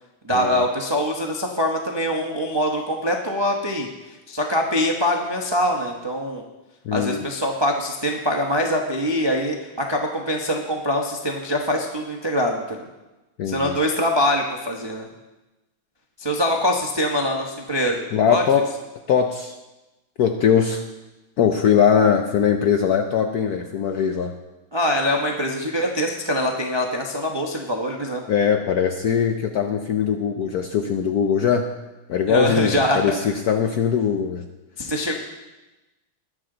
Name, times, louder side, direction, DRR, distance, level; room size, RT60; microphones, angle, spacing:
voice 1, 0.2-3.9 4.3-6.4 6.9-12.8 13.5-15.1 16.2-18.4 24.7-28.2 32.3-33.1 34.8-35.2, equal, 45° right, 1 dB, 0.3 m, -23 dB
voice 2, 6.8-7.3 13.4-13.7 18.1-18.7 19.1-19.5 20.2-20.8 21.4-24.3 28.3-31.7 32.1-34.4, left 7 dB, 85° left, 5 dB, 0.8 m, -21 dB
20.5 x 7.3 x 3.9 m, 1.1 s
omnidirectional pair, 2.4 m